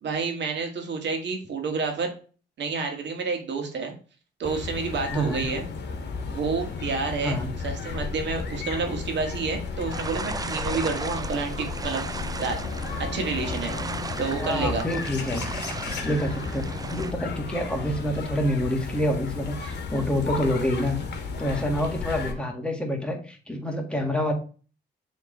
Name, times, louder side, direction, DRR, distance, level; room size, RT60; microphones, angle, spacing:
voice 1, 0.0-2.1 2.6-3.9 4.4-5.7 6.3-7.4 7.6-12.6 13.0-13.7 14.2-14.9, right 4 dB, 65° right, 4 dB, 1.8 m, -29 dB
sound 1, 4.4-22.3, left 5 dB, 60° left, 1.3 m, -33 dB
voice 2, 5.1-5.5 7.2-7.5 14.3-15.5 16.0-21.0 21.4-24.3, equal, 5° left, 1 dB, 1.8 m, -27 dB
sound 2, 9.9-17.1, right 4 dB, 20° right, 0.5 m, -35 dB
7.3 x 3.6 x 3.8 m, 0.38 s
cardioid pair, 90°, 20 cm